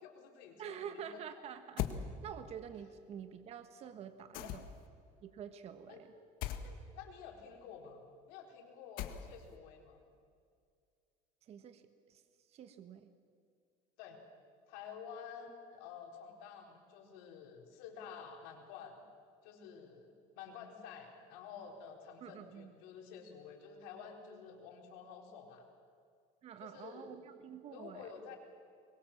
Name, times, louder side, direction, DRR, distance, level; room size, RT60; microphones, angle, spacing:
voice 1, 0.0-1.0 4.4-4.5 5.9-6.0 6.6-10.0 14.0-14.2 14.7-19.0 19.4-25.6 26.6-27.1 27.7-28.4, left 7 dB, 85° left, 2 dB, 4.3 m, -51 dB
voice 2, 0.6-4.6 5.2-6.1 11.4-12.2 12.5-13.1 22.2-22.7 26.4-28.1, right 8 dB, 40° right, 9 dB, 1.4 m, -48 dB
sound 1, 1.8-2.0 4.3-4.9 6.4-6.7 9.0-9.5, left 11 dB, 65° left, 1.8 m, -38 dB
24.0 x 22.0 x 7.4 m, 2.3 s
cardioid pair, 145°, 16 cm